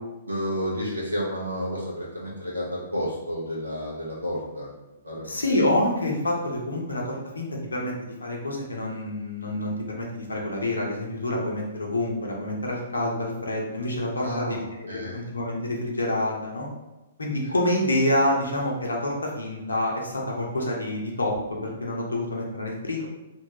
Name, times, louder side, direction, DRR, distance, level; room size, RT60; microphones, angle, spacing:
voice 1, 0.3-4.7 5.0-5.4 14.2-14.6 14.9-15.2 17.4-17.5, equal, 80° right, -4 dB, 1.0 m, -31 dB
voice 2, 5.2-16.7 17.2-23.0, left 1 dB, 75° left, -1 dB, 0.7 m, -27 dB
2.8 x 2.3 x 2.9 m, 1.0 s
figure-of-eight pair, 115°, 0 cm